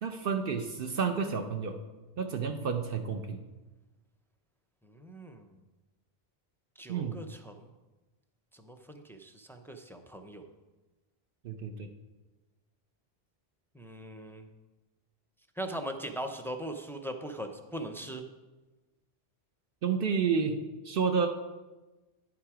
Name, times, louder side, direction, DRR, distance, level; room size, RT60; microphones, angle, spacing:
voice 1, 0.0-1.8 2.2-3.4 6.9-7.2 11.4-11.9 19.8-21.3, right 6 dB, 65° right, 5 dB, 0.8 m, -30 dB
voice 2, 4.8-5.5 6.8-7.7 8.5-10.4 13.7-14.5 15.6-18.2, right 1 dB, 5° left, 5 dB, 0.4 m, -40 dB
10.0 x 6.0 x 4.9 m, 1.2 s
omnidirectional pair, 1.1 m